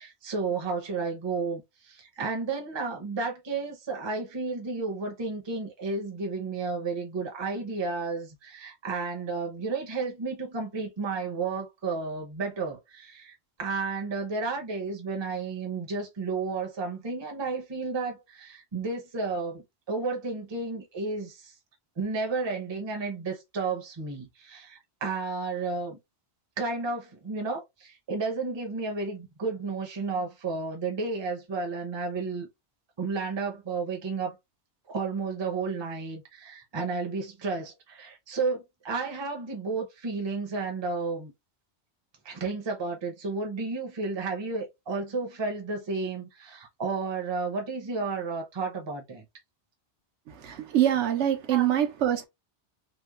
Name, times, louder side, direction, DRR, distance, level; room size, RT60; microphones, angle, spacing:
voice 1, 0.0-21.5 22.0-26.0 26.6-32.5 33.0-34.4 34.9-41.3 42.2-49.2 51.5-51.7, right 4 dB, 30° right, 0.6 m, -32 dB
voice 2, 50.3-52.3, right 11 dB, 85° right, 0.9 m, -25 dB
3.0 x 2.1 x 2.3 m
omnidirectional pair, 1.2 m